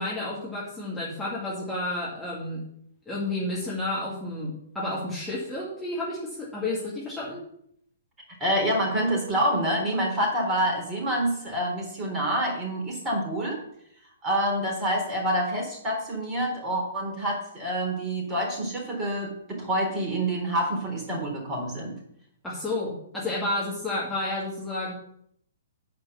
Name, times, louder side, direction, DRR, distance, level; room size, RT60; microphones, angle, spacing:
voice 1, 0.0-2.6 3.1-7.4 22.4-24.9, left 2 dB, 5° left, -8 dB, 2.2 m, -31 dB
voice 2, 8.4-13.6 14.2-21.9, right 1 dB, 20° right, -1 dB, 3.7 m, -27 dB
9.5 x 4.5 x 6.9 m, 0.70 s
figure-of-eight pair, 120°, 0 cm